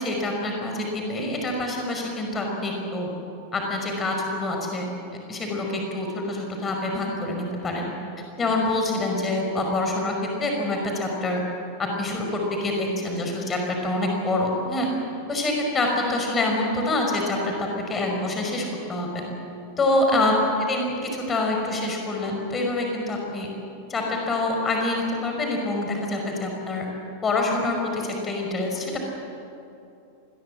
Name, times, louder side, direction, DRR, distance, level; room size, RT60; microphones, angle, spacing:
voice 1, 0.0-3.1 3.5-4.9 5.3-7.9 8.4-11.4 11.8-14.9 15.3-19.2 19.8-20.3 20.7-23.5 23.9-26.9 27.2-29.0, left 2 dB, 20° left, 1 dB, 5.3 m, -26 dB
26.0 x 21.0 x 7.7 m, 2.8 s
figure-of-eight pair, 90°, 0 cm